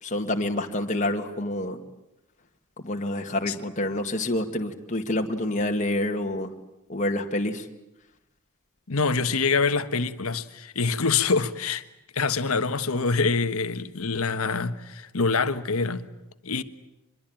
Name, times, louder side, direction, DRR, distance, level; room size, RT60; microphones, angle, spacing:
voice 1, 0.0-1.8 2.8-6.5 6.9-7.7, left 1 dB, 35° left, 1.9 m, -27 dB
voice 2, 8.9-11.8 12.1-16.1 16.4-16.6, left 4 dB, 75° left, 1.3 m, -25 dB
25.0 x 22.5 x 9.0 m
head